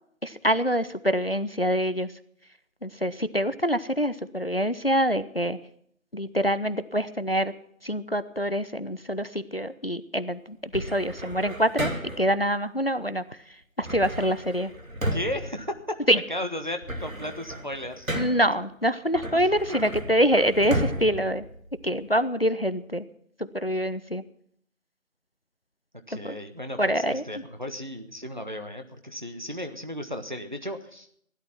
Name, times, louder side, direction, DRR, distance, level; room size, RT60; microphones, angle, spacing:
voice 1, 0.2-2.1 2.8-5.6 6.1-7.5 7.8-11.9 12.2-13.2 13.8-14.7 16.1-16.2 18.1-21.4 21.8-23.0 23.4-24.2 26.2-26.4 26.8-27.2, equal, 45° left, 14 dB, 0.7 m, -25 dB
sound 1, 10.7-12.4 13.8-16.3 16.6-18.6 19.1-22.2, right 1 dB, 80° right, 2.8 m, -34 dB
voice 2, 15.1-18.1 19.3-19.4 26.1-31.2, left 1 dB, 35° right, 7 dB, 1.2 m, -35 dB
16.5 x 11.5 x 5.8 m, 0.66 s
figure-of-eight pair, 175°, 40 cm